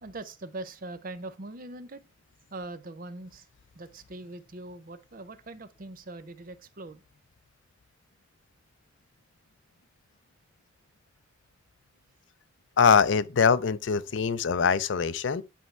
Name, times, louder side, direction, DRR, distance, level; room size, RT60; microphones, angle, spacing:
voice 1, 0.0-2.0 2.5-3.5 3.7-7.0, right 2 dB, 45° right, 0.7 m, -41 dB
voice 2, 12.8-15.4, left 6 dB, 70° left, 0.5 m, -23 dB
10.0 x 4.5 x 3.2 m
head